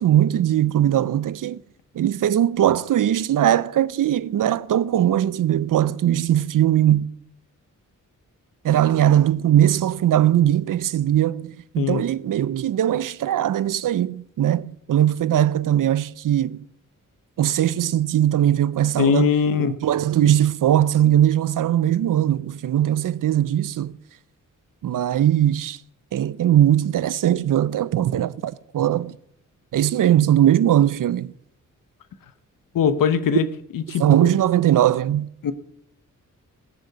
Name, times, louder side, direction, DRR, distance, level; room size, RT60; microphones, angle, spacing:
voice 1, 0.0-1.6 2.0-7.1 8.6-16.6 17.4-23.9 24.8-25.8 26.1-29.1 29.7-31.3 34.0-35.3, right 11 dB, 70° right, 0.6 m, -20 dB
voice 2, 19.0-19.8 32.7-33.5 33.7-34.3 35.4-35.5, left 7 dB, 85° left, 1.0 m, -21 dB
18.0 x 6.6 x 8.1 m
wide cardioid pair, 110°, 33 cm